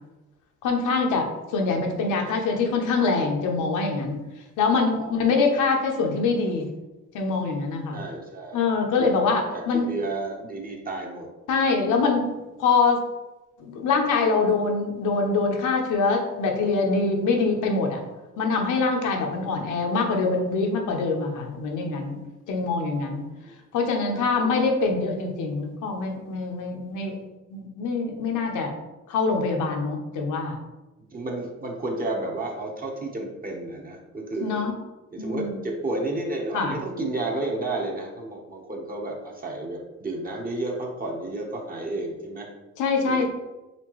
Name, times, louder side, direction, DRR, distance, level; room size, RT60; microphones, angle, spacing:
voice 1, 0.6-4.2 4.6-6.7 7.1-8.0 8.5-9.9 11.5-12.3 12.6-13.0 13.6-18.0 18.4-22.2 22.5-23.2 23.7-27.2 27.5-28.7 29.1-30.6 34.4-34.7 35.2-35.6 36.5-36.7 42.8-43.2, left 4 dB, 85° left, 2 dB, 0.8 m, -24 dB
voice 2, 5.0-5.3 7.9-8.7 9.0-9.1 9.5-11.3 19.3-19.5 23.4-23.5 24.1-24.4 31.1-34.6 35.1-42.5 43.0-43.2, right 2 dB, 30° right, 0 dB, 1.0 m, -32 dB
4.3 x 3.4 x 3.1 m, 1.1 s
cardioid pair, 90°, 30 cm